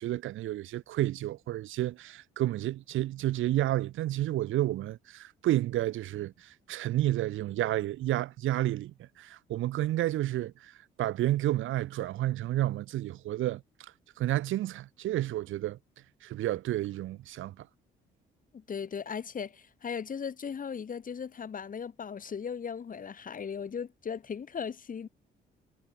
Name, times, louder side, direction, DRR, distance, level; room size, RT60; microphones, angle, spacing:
voice 1, 0.0-10.7 11.0-13.6 14.2-15.8 16.2-17.7, right 14 dB, 85° right, 2.3 m, -30 dB
voice 2, 18.5-25.1, left 6 dB, 45° left, 2.2 m, -37 dB
cardioid pair, 90°, 20 cm